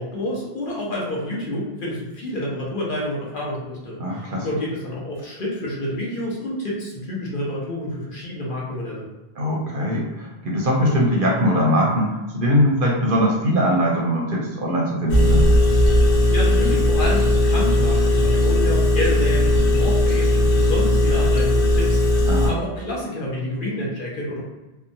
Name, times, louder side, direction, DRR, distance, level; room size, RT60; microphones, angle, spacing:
voice 1, 0.0-9.0 16.3-24.4, left 1 dB, 55° left, -4 dB, 0.9 m, -29 dB
voice 2, 4.0-4.5 9.4-15.5 22.3-22.5, equal, 60° right, -2 dB, 0.7 m, -21 dB
Engine, 15.1-22.5, left 1 dB, 80° left, 1.0 m, -17 dB
2.8 x 2.2 x 2.6 m, 1.1 s
omnidirectional pair, 1.1 m